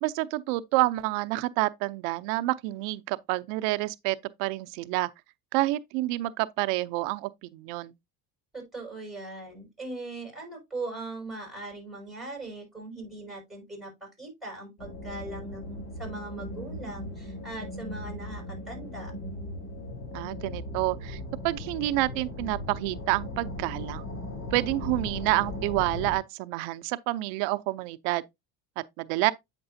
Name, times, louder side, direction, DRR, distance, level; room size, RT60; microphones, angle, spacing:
voice 1, 0.0-5.1 5.5-7.9 20.1-24.1 24.5-28.2 29.0-29.3, right 19 dB, 90° right, 0.6 m, -28 dB
voice 2, 8.5-19.1, right 2 dB, ahead, 5.5 m, -40 dB
sound 1, 14.8-26.2, left 1 dB, 35° left, 4.3 m, -38 dB
8.7 x 6.0 x 2.6 m
cardioid pair, 135°, 39 cm